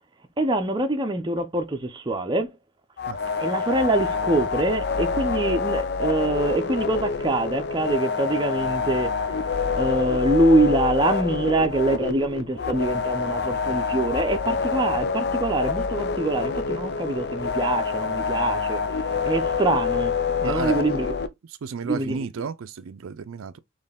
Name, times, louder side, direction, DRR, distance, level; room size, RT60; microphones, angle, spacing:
voice 1, 0.4-2.6 3.4-9.1 9.7-20.1 20.4-21.1 21.8-22.2, right 2 dB, 20° right, 0.7 m, -24 dB
sound 1, 3.0-21.3, left 5 dB, 50° left, 0.5 m, -26 dB
voice 2, 20.4-21.1 21.5-23.6, right 6 dB, 80° right, 0.4 m, -33 dB
4.3 x 3.2 x 3.5 m
head